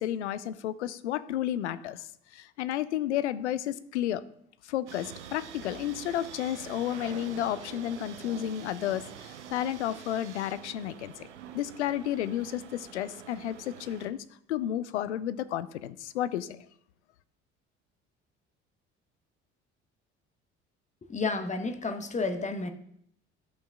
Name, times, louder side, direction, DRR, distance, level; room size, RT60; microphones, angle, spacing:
voice 1, 0.0-2.1 2.3-4.2 4.7-11.1 11.5-16.7, left 11 dB, 75° left, 15 dB, 0.5 m, -32 dB
sound 1, 4.9-14.1, right 9 dB, 80° right, 0.6 m, -46 dB
voice 2, 21.1-22.7, left 3 dB, 20° left, 8 dB, 1.0 m, -31 dB
12.0 x 5.5 x 3.6 m, 0.69 s
figure-of-eight pair, 55°, 34 cm